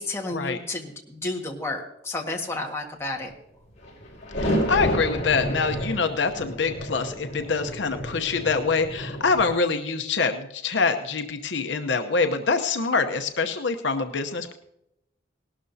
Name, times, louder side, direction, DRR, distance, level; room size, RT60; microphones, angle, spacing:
voice 1, 0.0-3.3, left 2 dB, 15° left, 0 dB, 1.7 m, -31 dB
sound 1, 3.8-9.5, equal, 40° left, 5.3 m, -30 dB
voice 2, 4.4-14.5, left 4 dB, 70° left, 6 dB, 0.8 m, -25 dB
18.5 x 12.0 x 2.8 m, 0.83 s
head